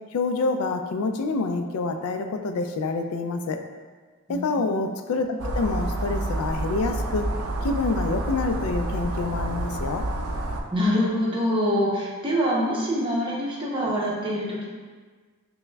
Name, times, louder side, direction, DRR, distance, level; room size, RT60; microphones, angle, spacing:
voice 1, 0.1-3.6 4.3-7.3 7.6-10.1, left 3 dB, 80° left, 6 dB, 0.3 m, -27 dB
voice 2, 4.3-4.8 10.7-14.7, equal, 25° right, -4 dB, 0.6 m, -25 dB
sound 1, 5.4-10.6, right 1 dB, 80° right, 0.4 m, -28 dB
5.6 x 2.1 x 2.2 m, 1.4 s
head